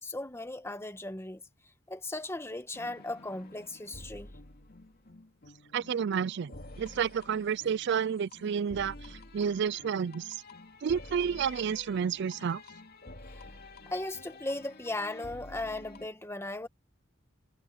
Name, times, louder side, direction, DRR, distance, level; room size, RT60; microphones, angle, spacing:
voice 1, 0.0-1.4 1.9-4.3 13.3-13.4 13.9-16.7, left 2 dB, 15° left, 1.4 m, -37 dB
sound 1, 2.7-16.1, left 2 dB, 50° left, 2.6 m, -50 dB
voice 2, 5.7-10.4 10.8-12.6, right 7 dB, 60° right, 0.4 m, -30 dB
head